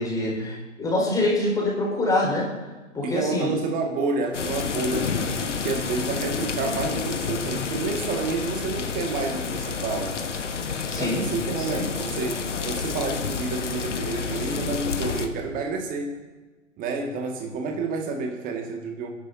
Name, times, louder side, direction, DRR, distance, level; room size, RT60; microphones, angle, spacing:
voice 1, 0.0-2.5 2.9-3.5 10.9-11.3 11.6-11.8, left 2 dB, 10° left, -4 dB, 4.9 m, -25 dB
voice 2, 3.0-10.2 11.0-16.2 16.8-19.1, right 4 dB, 20° right, 3 dB, 2.0 m, -29 dB
sound 1, 4.3-15.3, left 5 dB, 65° left, 1.4 m, -29 dB
29.0 x 11.5 x 2.8 m, 1.2 s
figure-of-eight pair, 120°, 38 cm